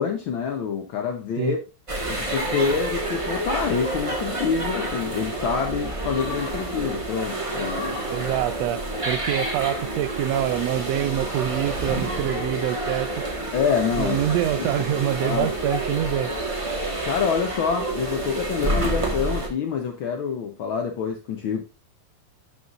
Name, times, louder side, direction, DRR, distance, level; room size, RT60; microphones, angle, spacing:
voice 1, 0.0-1.6 2.1-8.0 13.5-14.2 15.2-15.5 17.0-21.6, left 6 dB, 75° left, 1.2 m, -26 dB
sound 1, 1.9-19.5, right 2 dB, 20° right, 0.9 m, -29 dB
voice 2, 8.1-8.8 9.0-13.1 14.0-16.3, right 12 dB, 80° right, 1.5 m, -25 dB
12.5 x 5.6 x 2.5 m
omnidirectional pair, 3.4 m